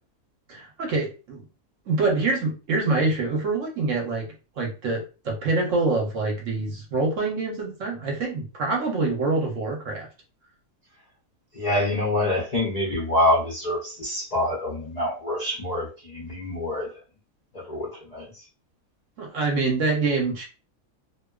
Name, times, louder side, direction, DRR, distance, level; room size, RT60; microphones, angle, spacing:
voice 1, 0.5-1.4 1.9-4.3 4.6-10.1 19.2-20.4, right 3 dB, 60° right, 0 dB, 0.9 m, -25 dB
voice 2, 11.5-16.9 17.5-18.2, left 1 dB, 55° left, -4 dB, 0.4 m, -26 dB
2.7 x 2.2 x 2.2 m, 0.33 s
omnidirectional pair, 1.6 m